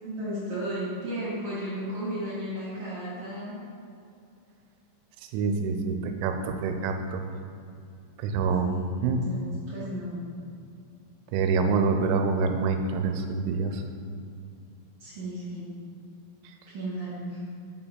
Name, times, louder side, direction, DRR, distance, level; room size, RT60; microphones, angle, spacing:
voice 1, 0.0-3.5 8.6-10.3 15.0-15.7 16.7-17.4, right 1 dB, 55° right, -11 dB, 2.7 m, -34 dB
voice 2, 5.3-7.3 8.2-9.2 11.3-13.8, right 4 dB, 85° right, 6 dB, 3.0 m, -26 dB
6.9 x 4.6 x 5.6 m, 2.5 s
omnidirectional pair, 5.7 m